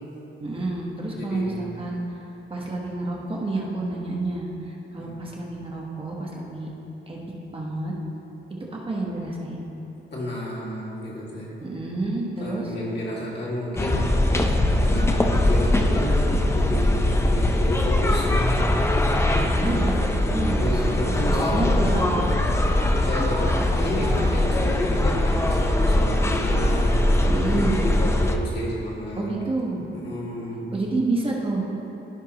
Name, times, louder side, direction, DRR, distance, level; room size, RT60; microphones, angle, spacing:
voice 1, 0.4-2.0 2.5-6.7 7.1-7.9 8.7-9.7 11.6-12.7 19.6-20.8 21.2-22.3 27.3-27.9 29.2-29.9 30.7-31.7, right 2 dB, 25° right, -3 dB, 1.1 m, -29 dB
voice 2, 1.1-1.6 5.0-5.1 10.1-11.5 12.4-18.6 19.8-19.9 20.6-22.0 23.0-26.9 27.2-29.3 29.7-30.7, equal, 55° left, -6 dB, 2.0 m, -31 dB
sound 1, 13.8-28.4, left 1 dB, 10° left, 0.5 m, -21 dB
15.0 x 5.5 x 2.9 m, 3.0 s
wide cardioid pair, 135°, 21 cm